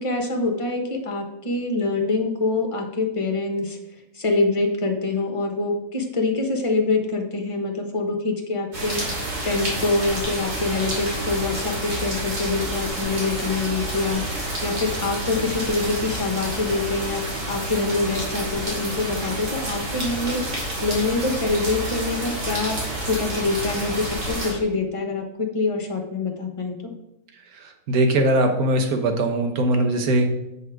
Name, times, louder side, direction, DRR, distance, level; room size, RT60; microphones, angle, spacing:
voice 1, 0.0-3.8 4.1-26.9, left 3 dB, 25° left, 3 dB, 1.0 m, -25 dB
sound 1, 8.7-24.5, right 1 dB, 90° right, 2.8 m, -29 dB
voice 2, 27.9-30.3, right 1 dB, 70° right, 5 dB, 1.5 m, -20 dB
7.8 x 5.6 x 4.8 m, 0.89 s
omnidirectional pair, 1.6 m